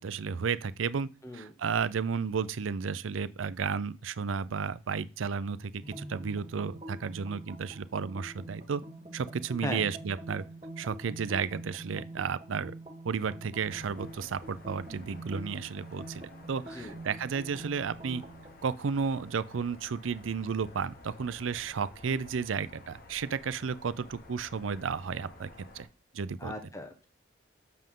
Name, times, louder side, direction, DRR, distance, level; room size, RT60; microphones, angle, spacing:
voice 1, 0.0-1.1 1.3-8.8 9.1-10.4 10.8-12.7 13.0-18.2 18.6-25.5 25.7-25.9 26.1-26.5, right 6 dB, 90° right, 0.5 m, -33 dB
sound 1, 5.8-18.6, right 1 dB, 30° right, 1.2 m, -46 dB
sound 2, 13.6-25.9, left 2 dB, 50° left, 1.3 m, -53 dB
voice 2, 26.4-27.1, left 1 dB, 15° left, 1.0 m, -38 dB
7.7 x 6.5 x 3.7 m
head